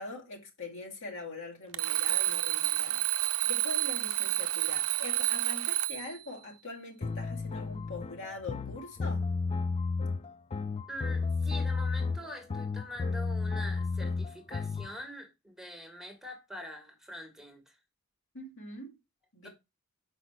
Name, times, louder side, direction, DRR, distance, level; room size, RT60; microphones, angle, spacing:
voice 1, 0.0-9.3 18.3-19.0 19.3-19.5, left 2 dB, 65° left, 2.0 m, -43 dB
Alarm, 1.7-6.2, right 14 dB, 85° right, 0.5 m, -29 dB
sound 1, 7.0-14.9, left 4 dB, 30° left, 0.3 m, -32 dB
voice 2, 10.9-17.8 19.4-19.5, equal, ahead, 1.5 m, -44 dB
5.9 x 4.8 x 4.5 m
head